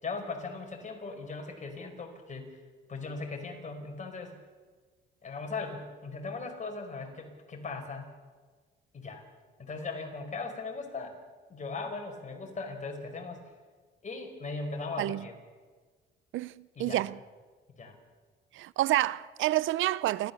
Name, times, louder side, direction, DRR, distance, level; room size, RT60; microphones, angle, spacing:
voice 1, 0.0-2.5 2.9-4.3 5.2-8.1 8.9-9.2 9.6-11.2 11.5-13.4 14.0-15.3 16.7-17.1 17.8-18.0, left 3 dB, 40° left, 4.8 m, -38 dB
voice 2, 16.3-17.2 18.5-20.3, right 15 dB, 80° right, 0.6 m, -29 dB
29.5 x 13.0 x 7.0 m
cardioid pair, 90°, 20 cm